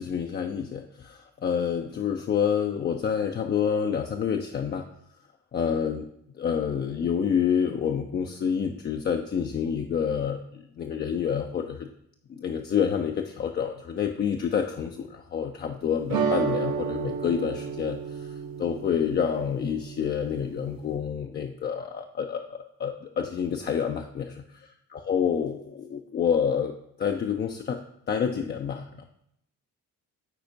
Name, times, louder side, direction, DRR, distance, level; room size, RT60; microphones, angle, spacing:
voice 1, 0.0-4.9 5.5-6.1 6.4-11.9 12.3-18.3 18.6-27.8 28.1-29.0, left 7 dB, 25° left, 4 dB, 0.3 m, -28 dB
sound 1, 16.1-21.0, right 6 dB, 50° right, 0.8 m, -32 dB
8.8 x 4.2 x 2.6 m, 0.75 s
figure-of-eight pair, 40°, 45 cm